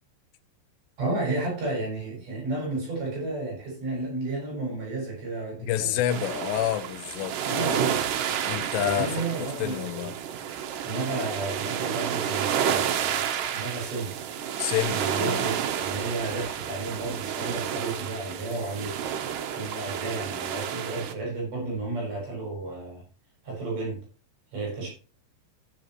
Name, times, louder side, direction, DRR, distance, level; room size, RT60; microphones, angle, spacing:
voice 1, 1.0-6.0 7.4-8.0 8.8-10.1 10.8-14.1 14.9-15.5 15.8-18.9 19.2-23.0 23.4-24.0 24.5-24.9, right 2 dB, 45° right, 7.7 m, -32 dB
voice 2, 5.6-7.3 8.5-9.1 9.4-10.1 14.6-15.5, left 12 dB, 85° left, 2.8 m, -28 dB
sound 1, 6.1-21.1, right 9 dB, 75° right, 2.0 m, -30 dB
16.0 x 7.6 x 3.1 m
omnidirectional pair, 5.0 m